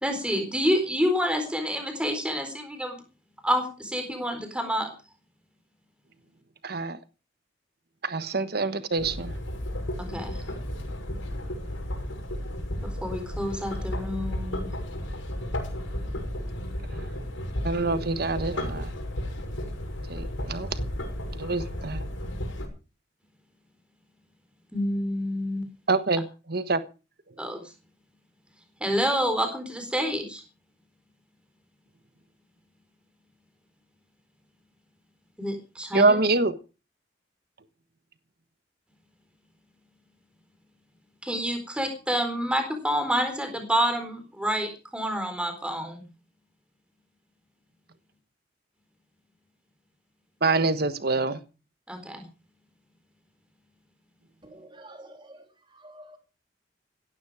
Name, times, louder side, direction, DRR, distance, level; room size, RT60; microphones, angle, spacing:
voice 1, 0.0-3.0 3.4-4.9 10.0-10.4 12.8-14.6 24.7-25.7 27.4-27.6 28.8-30.4 35.4-36.2 41.2-46.0 51.9-52.3, equal, 5° right, 4.1 m, -28 dB
voice 2, 6.6-7.0 8.0-9.3 17.6-18.9 20.1-20.7 21.4-22.0 25.9-26.8 35.9-36.5 50.4-51.4, right 3 dB, 55° right, 1.3 m, -25 dB
sound 1, 8.9-22.7, left 1 dB, 85° left, 6.1 m, -33 dB
voice 3, 54.4-56.2, right 1 dB, 25° right, 3.6 m, -48 dB
17.0 x 12.5 x 4.9 m
head